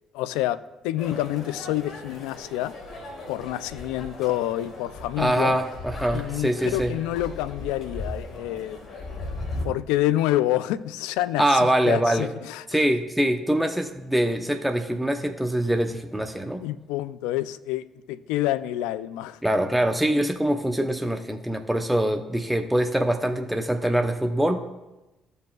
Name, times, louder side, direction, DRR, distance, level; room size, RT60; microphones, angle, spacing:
voice 1, 0.1-2.7 3.3-5.6 6.1-8.8 9.4-12.8 16.6-19.4, left 14 dB, 85° left, 0.3 m, -28 dB
sound 1, 1.0-9.7, left 2 dB, 60° left, 1.7 m, -37 dB
voice 2, 5.2-6.9 11.4-12.3 12.7-16.6 19.4-24.6, right 1 dB, 5° right, 0.8 m, -24 dB
15.0 x 5.3 x 2.4 m
supercardioid pair, 65°, 0 cm